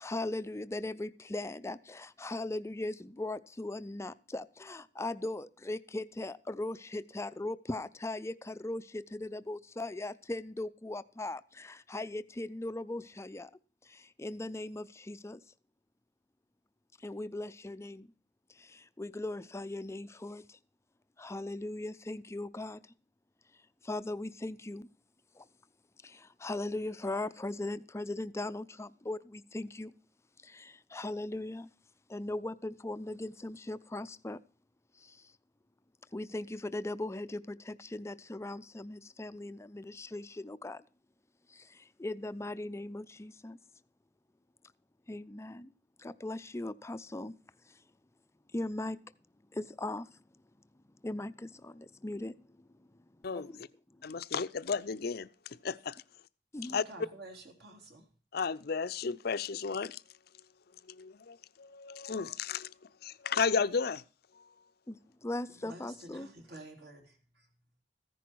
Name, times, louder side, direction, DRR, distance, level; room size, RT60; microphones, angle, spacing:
voice 1, 0.0-11.4 11.9-13.5 14.2-15.4 17.0-18.0 19.0-20.4 21.2-22.8 23.9-24.8 26.4-29.9 30.9-31.6 32.1-34.4 36.1-40.8 42.0-43.5 45.1-45.7 46.2-47.3 48.5-49.0 49.6-50.0 51.0-51.3 52.0-52.3 56.5-56.8 65.2-66.3, left 2 dB, 15° left, 0.5 m, -38 dB
voice 2, 53.2-53.7 54.0-56.0 56.7-56.8 58.3-60.0 60.9-62.7 63.0-64.0 64.4-64.5, left 5 dB, 60° left, 0.6 m, -33 dB
voice 3, 56.7-58.1 65.5-67.0, right 2 dB, 65° right, 3.4 m, -50 dB
14.5 x 10.5 x 4.6 m
head